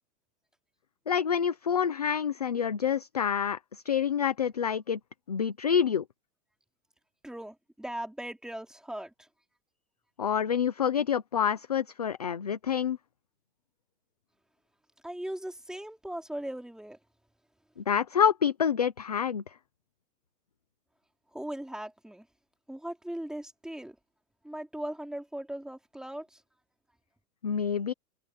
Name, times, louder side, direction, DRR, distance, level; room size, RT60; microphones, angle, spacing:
voice 1, 1.1-5.0 5.3-6.0 10.2-13.0 17.8-19.6 27.4-27.9, left 8 dB, 30° left, 0.3 m, -27 dB
voice 2, 7.2-9.3 15.0-17.0 21.3-22.3 22.7-24.0 24.4-26.4, right 1 dB, ahead, 2.6 m, -39 dB
supercardioid pair, 160°, 48 cm